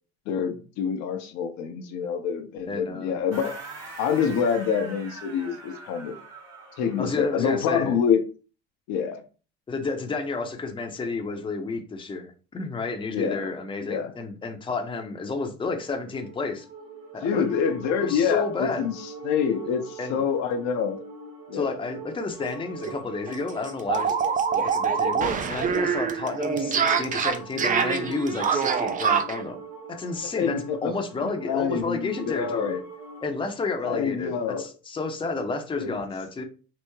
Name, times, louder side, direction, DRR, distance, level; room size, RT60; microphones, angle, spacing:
voice 1, 0.3-3.6 4.0-6.1 6.8-8.2 8.9-9.2 13.1-13.5 13.8-14.1 17.2-21.0 21.5-21.8 30.4-32.8 33.8-34.7 35.7-36.0, left 7 dB, 60° left, 0.7 m, -26 dB
voice 2, 2.7-3.1 7.0-8.0 9.7-16.7 17.1-17.4 18.0-18.9 20.0-20.2 21.5-24.1 24.5-29.6 29.9-32.8 33.2-36.4, left 3 dB, 15° left, 0.7 m, -31 dB
sound 1, 3.3-7.7, right 3 dB, 50° right, 1.4 m, -43 dB
sound 2, 15.8-33.3, right 3 dB, 75° right, 1.6 m, -43 dB
sound 3, 22.4-22.5 22.8-22.9 23.3-29.4, right 6 dB, 25° right, 0.5 m, -25 dB
3.4 x 2.0 x 3.1 m
hypercardioid pair, 80°, 31 cm